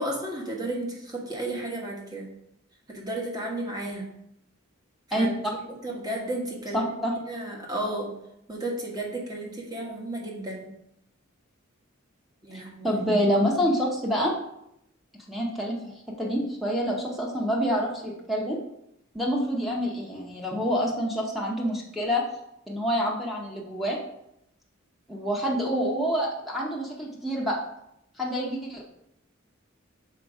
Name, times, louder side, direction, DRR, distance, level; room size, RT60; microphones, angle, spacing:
voice 1, 0.0-2.3 2.9-4.1 5.1-5.3 5.7-6.9 7.3-8.1 8.5-10.7 12.4-13.0, right 1 dB, 20° right, -1 dB, 1.3 m, -33 dB
voice 2, 6.7-7.1 12.5-14.3 15.3-18.6 19.1-22.2 22.7-24.0 25.1-27.6 28.2-28.9, equal, ahead, -3 dB, 1.0 m, -27 dB
5.8 x 4.5 x 4.8 m, 0.80 s
head